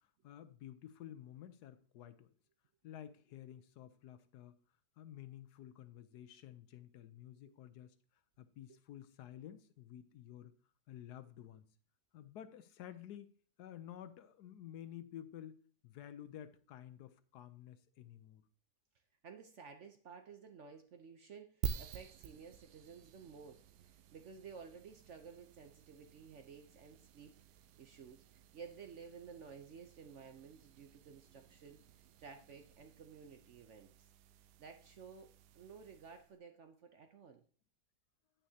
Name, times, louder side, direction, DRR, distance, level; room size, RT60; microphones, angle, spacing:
voice 1, 0.2-2.3 2.8-4.6 5.0-7.9 8.4-10.6 10.9-11.7 12.1-13.3 13.6-18.4, left 11 dB, 75° left, 11 dB, 1.2 m, -52 dB
voice 2, 19.2-27.4 27.8-31.8 32.2-34.1 34.6-35.3 35.5-37.4, right 6 dB, 60° right, 6 dB, 0.8 m, -54 dB
sound 1, 21.6-36.4, right 9 dB, 80° right, 1.1 m, -50 dB
8.9 x 8.6 x 2.8 m, 0.42 s
omnidirectional pair, 1.8 m